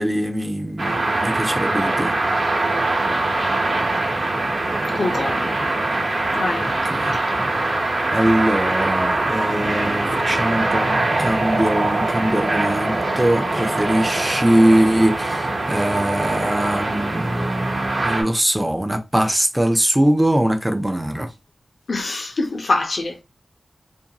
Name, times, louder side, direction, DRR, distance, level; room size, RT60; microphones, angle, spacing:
voice 1, 0.0-2.2 6.6-7.5 8.1-21.3, right 1 dB, 15° right, 0.4 m, -22 dB
sound 1, 0.8-18.2, right 2 dB, 65° right, 0.8 m, -22 dB
voice 2, 4.9-5.5 6.4-6.7 7.1-7.4 21.9-23.2, left 2 dB, 75° left, 0.6 m, -24 dB
2.6 x 2.2 x 2.8 m
wide cardioid pair, 95°, 0 cm